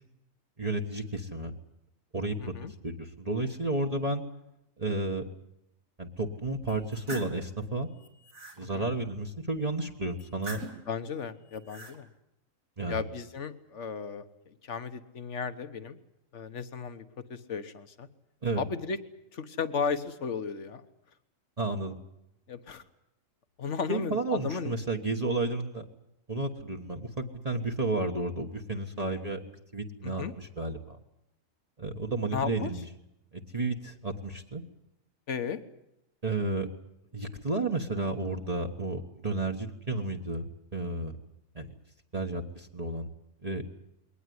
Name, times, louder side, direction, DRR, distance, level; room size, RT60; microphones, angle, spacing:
voice 1, 0.6-1.5 2.1-4.2 4.8-5.2 6.0-7.9 8.6-10.6 12.8-13.0 18.4-18.6 21.6-22.0 23.9-25.8 26.3-29.4 29.7-31.0 31.8-32.8 33.3-34.6 36.2-36.7 37.1-40.5 40.7-41.2 41.5-41.7 42.1-43.1 43.4-43.6, right 2 dB, 30° right, 1 dB, 1.5 m, -32 dB
voice 2, 2.4-2.7 8.6-8.9 10.9-12.1 12.9-16.0 16.3-17.0 17.3-18.1 18.6-19.0 19.3-20.9 22.5-22.8 23.6-24.7 30.0-30.3 32.3-32.7 35.3-35.6, left 5 dB, 60° left, 11 dB, 1.6 m, -35 dB
sound 1, 6.7-7.4 7.9-8.6 10.2-10.9 11.5-12.0, right 1 dB, 80° right, 3.3 m, -43 dB
22.0 x 18.5 x 9.6 m, 0.84 s
omnidirectional pair, 1.4 m